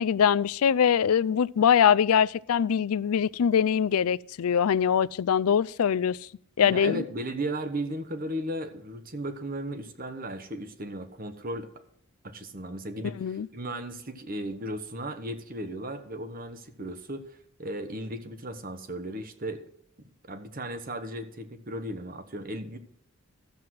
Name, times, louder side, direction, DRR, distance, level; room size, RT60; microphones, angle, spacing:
voice 1, 0.0-6.2 6.6-7.0 13.2-13.5, left 8 dB, 80° left, 0.4 m, -23 dB
voice 2, 6.6-11.7 12.2-19.6 20.3-22.8, right 1 dB, 40° right, 1.2 m, -36 dB
13.5 x 7.7 x 6.2 m
head